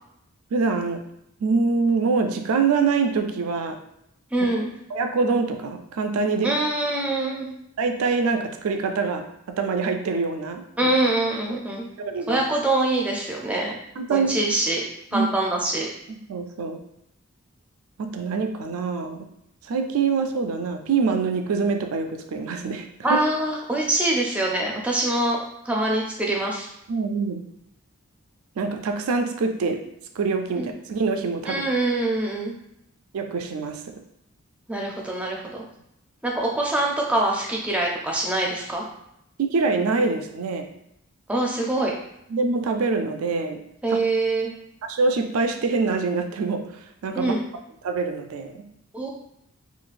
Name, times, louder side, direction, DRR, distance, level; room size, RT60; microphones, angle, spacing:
voice 1, 0.5-1.0 1.4-3.8 4.9-6.6 7.8-10.6 12.0-12.4 14.0-14.4 15.1-15.3 16.1-16.8 18.0-19.3 19.6-23.2 26.9-27.4 28.6-29.8 30.2-31.6 33.1-34.0 39.4-40.7 42.3-43.6 43.9-44.0 44.8-47.3 47.8-48.7, right 4 dB, 90° right, 6 dB, 0.4 m, -25 dB
voice 2, 4.3-4.7 6.4-7.5 10.8-11.9 12.3-13.8 14.1-14.8 15.1-15.9 23.0-25.4 25.6-26.7 30.6-30.7 31.5-32.5 34.7-35.6 36.2-38.8 41.3-41.9 43.8-44.5 47.1-47.4 48.9-49.1, right 2 dB, 5° right, -1 dB, 0.4 m, -24 dB
3.8 x 2.3 x 2.5 m, 0.78 s
head